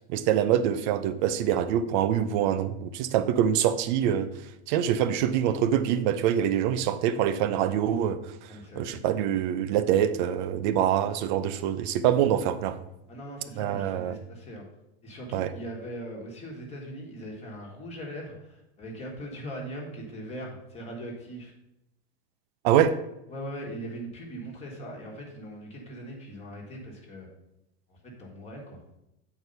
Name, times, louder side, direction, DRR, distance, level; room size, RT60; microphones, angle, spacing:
voice 1, 0.1-4.3 4.7-8.2 8.8-12.8 13.6-14.2 15.3-15.5 22.6-22.9, right 10 dB, 45° right, 12 dB, 0.6 m, -25 dB
voice 2, 8.5-8.9 13.1-14.7 15.0-21.5 23.3-27.3 27.9-28.8, equal, 20° left, -1 dB, 1.6 m, -40 dB
8.3 x 4.7 x 5.4 m, 0.87 s
supercardioid pair, 155°, 33 cm